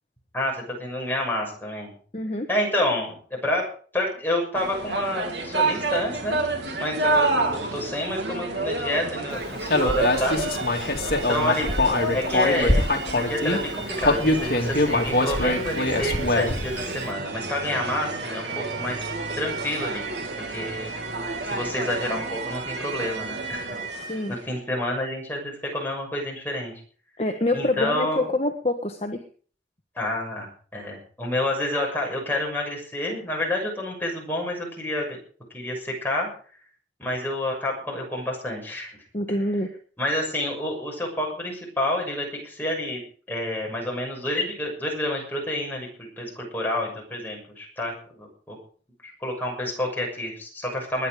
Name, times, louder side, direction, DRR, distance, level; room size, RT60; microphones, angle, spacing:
voice 1, 0.3-1.9 2.5-3.6 3.9-6.4 6.7-10.4 11.1-11.7 12.1-12.8 13.2-19.0 19.3-20.1 20.5-20.9 21.4-23.7 24.1-26.7 27.5-28.3 29.9-35.2 35.5-36.3 37.0-39.0 39.3-39.4 40.0-43.0 43.3-48.6 49.0-51.1, left 1 dB, 10° left, -1 dB, 6.6 m, -29 dB
voice 2, 2.1-2.5 24.1-24.3 27.2-29.2 39.1-39.7, left 2 dB, 35° left, 4 dB, 1.4 m, -26 dB
sound 1, 4.5-24.4, right 3 dB, 80° right, 2.9 m, -30 dB
Human voice, 9.7-13.6 14.0-16.7, left 2 dB, 55° left, 2.4 m, -23 dB
21.0 x 10.0 x 5.1 m, 0.44 s
head